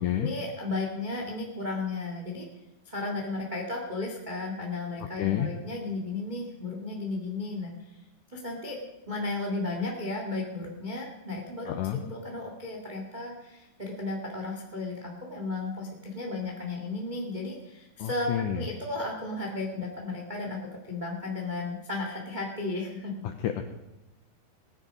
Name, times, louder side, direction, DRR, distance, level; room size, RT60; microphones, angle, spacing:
voice 1, 0.2-2.5 2.8-7.9 8.3-8.8 9.1-23.1, left 2 dB, 25° right, 0 dB, 0.9 m, -34 dB
voice 2, 5.2-5.5 11.7-12.0 18.0-18.7 23.2-23.6, left 10 dB, 80° left, 7 dB, 1.8 m, -29 dB
19.0 x 9.9 x 5.2 m, 0.98 s
omnidirectional pair, 4.6 m